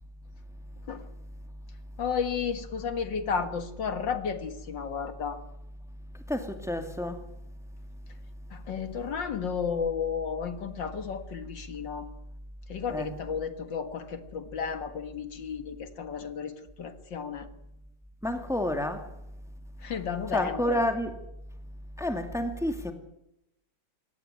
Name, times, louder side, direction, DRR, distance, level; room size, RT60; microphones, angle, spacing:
voice 1, 2.0-5.4 8.5-12.1 12.7-17.5 19.8-20.9, left 6 dB, 70° left, 2.3 m, -33 dB
voice 2, 6.3-7.2 12.9-13.1 18.2-19.1 20.3-21.1 22.0-22.9, left 1 dB, ahead, 2.3 m, -29 dB
25.0 x 18.0 x 9.6 m
omnidirectional pair, 2.1 m